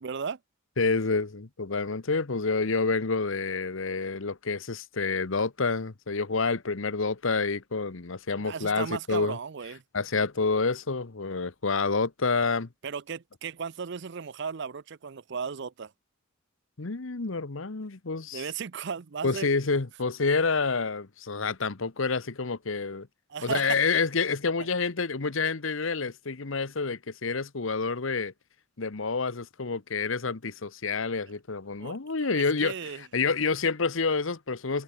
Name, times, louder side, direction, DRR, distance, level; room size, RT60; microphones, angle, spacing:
voice 1, 0.0-0.4 8.4-9.8 12.8-15.9 18.3-19.5 23.3-23.8 24.6-24.7 31.8-32.0 32.3-33.0, right 6 dB, 55° right, 0.6 m, -35 dB
voice 2, 0.8-9.4 9.9-12.7 16.8-18.4 19.2-23.1 23.4-28.3 28.8-34.8, left 4 dB, 70° left, 1.0 m, -28 dB
head